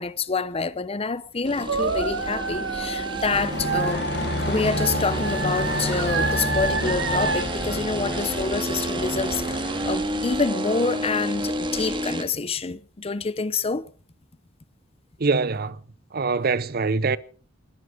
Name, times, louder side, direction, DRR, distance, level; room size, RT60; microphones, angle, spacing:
voice 1, 0.0-4.1 4.5-13.9, left 4 dB, 30° left, 0.7 m, -27 dB
sound 1, 1.4-12.2, right 1 dB, 25° right, 2.1 m, -30 dB
sound 2, 1.7-7.4, right 4 dB, 75° right, 2.2 m, -28 dB
sound 3, 3.3-10.0, left 2 dB, 60° left, 1.2 m, -30 dB
voice 2, 15.2-15.8 16.1-17.2, right 4 dB, 50° right, 0.8 m, -23 dB
20.0 x 13.0 x 5.0 m
head